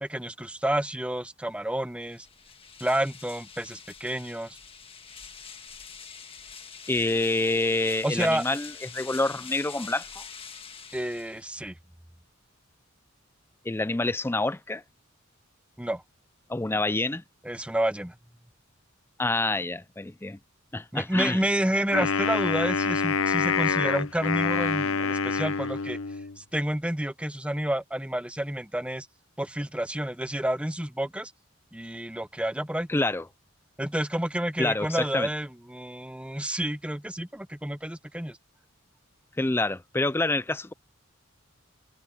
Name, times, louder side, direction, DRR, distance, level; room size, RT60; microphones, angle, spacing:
voice 1, 0.0-2.3 2.8-4.6 8.0-8.4 10.9-11.7 15.8-16.0 17.4-18.1 20.9-26.0 26.4-29.1 29.4-31.3 31.7-32.9 33.8-38.4, right 1 dB, 5° right, 1.0 m, -29 dB
sound 1, 2.0-11.7, left 6 dB, 25° left, 1.5 m, -45 dB
voice 2, 6.9-10.2 13.7-14.8 16.5-17.2 19.2-20.4 20.7-21.4 32.9-33.2 34.6-35.3 39.4-40.7, left 2 dB, 10° left, 0.4 m, -27 dB
Wind instrument woodwind instrument, 21.9-26.4, left 5 dB, 80° left, 0.8 m, -26 dB
head